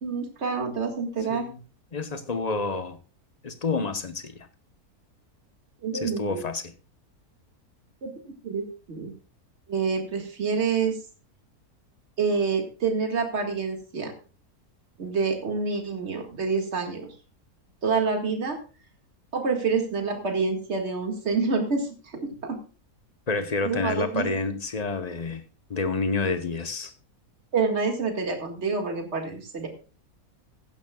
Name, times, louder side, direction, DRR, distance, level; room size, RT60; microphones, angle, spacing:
voice 1, 0.0-1.5 5.8-6.4 8.0-8.1 8.4-9.1 9.7-11.0 12.2-14.1 15.0-17.1 17.8-18.6 19.3-22.6 23.6-24.3 27.5-29.7, right 4 dB, 45° right, 2.2 m, -27 dB
voice 2, 1.9-3.0 3.4-4.4 5.9-6.7 23.3-25.4 25.7-26.9, left 3 dB, 30° left, 0.9 m, -29 dB
15.5 x 11.5 x 2.3 m
omnidirectional pair, 1.6 m